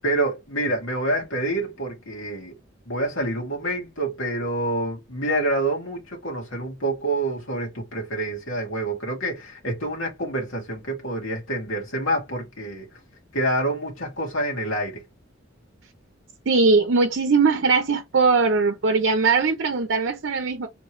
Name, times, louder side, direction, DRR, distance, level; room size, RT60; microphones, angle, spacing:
voice 1, 0.0-2.5 2.9-12.9 13.3-15.0, right 1 dB, 90° left, 2.5 m, -27 dB
voice 2, 16.5-20.7, right 4 dB, 65° right, 0.6 m, -20 dB
4.3 x 3.1 x 3.2 m
head